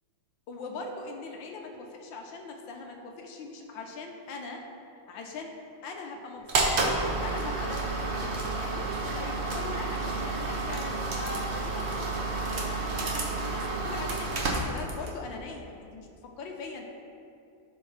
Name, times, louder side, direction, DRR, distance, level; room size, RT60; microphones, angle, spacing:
voice 1, 0.5-4.6 5.1-5.6 5.8-12.3 12.6-16.8, left 3 dB, 80° left, 2 dB, 1.5 m, -41 dB
sound 1, 6.5-15.2, right 3 dB, 45° right, 0.9 m, -30 dB
14.0 x 4.7 x 3.2 m, 2.5 s
omnidirectional pair, 2.1 m